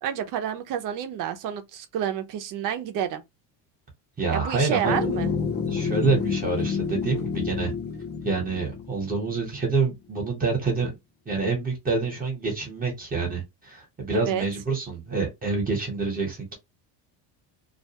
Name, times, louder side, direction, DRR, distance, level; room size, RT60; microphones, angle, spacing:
voice 1, 0.0-3.2 4.3-5.3 14.1-14.5, right 9 dB, 45° right, 0.5 m, -29 dB
voice 2, 4.2-5.0 5.7-7.7 8.2-10.9 11.3-16.5, right 4 dB, 20° right, 0.9 m, -27 dB
sound 1, 4.9-9.5, left 6 dB, 25° left, 0.5 m, -29 dB
2.3 x 2.2 x 2.7 m
cardioid pair, 155°, 46 cm